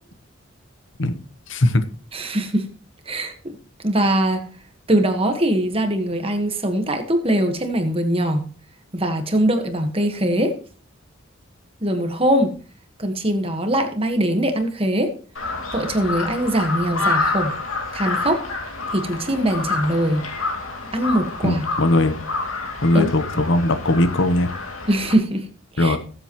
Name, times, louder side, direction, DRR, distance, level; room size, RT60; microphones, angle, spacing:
voice 1, 1.5-1.8 21.4-22.1 22.8-24.5 25.8-26.0, left 1 dB, 65° left, 10 dB, 1.0 m, -19 dB
voice 2, 2.1-2.7 3.0-3.6 3.8-4.4 4.9-8.5 8.9-10.5 11.8-12.5 13.0-15.1 15.7-17.5 17.9-18.4 18.9-20.2 20.9-21.6 22.9-23.1 24.9-25.5 25.7-26.0, right 1 dB, 25° right, 6 dB, 1.5 m, -21 dB
Crow, 15.3-25.1, left 3 dB, 85° left, 2.7 m, -28 dB
19.5 x 7.8 x 3.1 m, 0.41 s
head